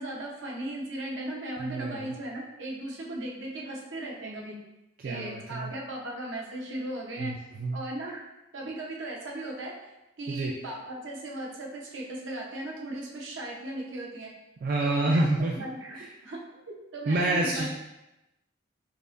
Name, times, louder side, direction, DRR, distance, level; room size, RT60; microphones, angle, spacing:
voice 1, 0.0-4.6 5.0-7.3 7.7-8.2 8.5-9.7 10.2-14.3 14.8-15.2 15.6-16.0 16.2-16.4 16.7-17.7, right 1 dB, 80° right, -2 dB, 0.8 m, -37 dB
voice 2, 1.6-2.1 5.0-5.7 7.2-7.8 10.3-10.5 14.6-15.6 15.9-16.1 17.1-17.7, right 2 dB, 50° right, -1 dB, 0.3 m, -28 dB
5.2 x 2.2 x 2.5 m, 0.95 s
head